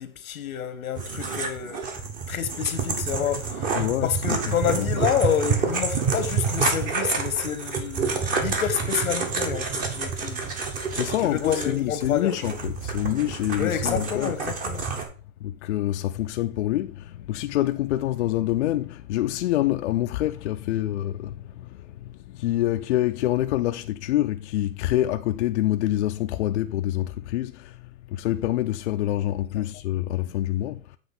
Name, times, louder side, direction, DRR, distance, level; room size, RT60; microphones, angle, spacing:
voice 1, 0.0-1.8 2.3-10.5 11.2-12.3 13.6-14.8 29.5-29.7, left 9 dB, 85° left, 1.2 m, -28 dB
sound 1, 1.0-15.1, right 5 dB, 20° right, 0.9 m, -28 dB
voice 2, 3.7-5.0 10.9-14.3 15.4-31.0, left 14 dB, 55° left, 0.5 m, -26 dB
8.0 x 3.1 x 5.7 m
hypercardioid pair, 140°, 41 cm